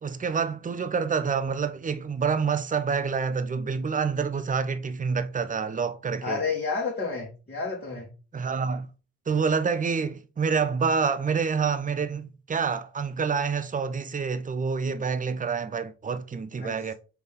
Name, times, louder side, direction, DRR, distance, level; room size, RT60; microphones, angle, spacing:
voice 1, 0.0-6.5 8.3-8.9 9.3-16.9, right 5 dB, 20° right, 0.6 m, -27 dB
voice 2, 6.2-8.1 16.6-16.8, left 4 dB, 25° left, 1.5 m, -30 dB
3.9 x 3.5 x 3.4 m
hypercardioid pair, 45°, 36 cm